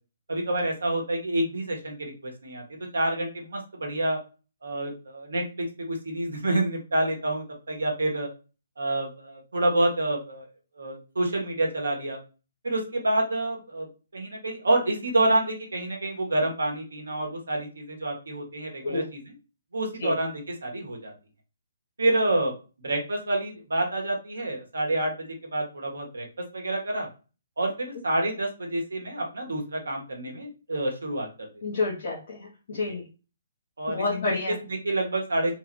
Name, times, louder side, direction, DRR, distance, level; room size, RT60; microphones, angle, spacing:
voice 1, 0.3-2.6 2.9-4.2 4.6-8.3 8.8-10.5 10.8-12.2 12.6-13.9 14.1-19.3 19.7-21.1 22.0-26.3 26.5-27.1 27.6-31.5 32.9-33.0 33.8-34.4 34.7-35.5, right 1 dB, 70° right, 1 dB, 1.2 m, -28 dB
voice 2, 31.6-33.0 33.9-34.5, left 3 dB, 50° left, -4 dB, 1.0 m, -29 dB
3.5 x 2.5 x 3.1 m, 0.33 s
figure-of-eight pair, 130°, 0 cm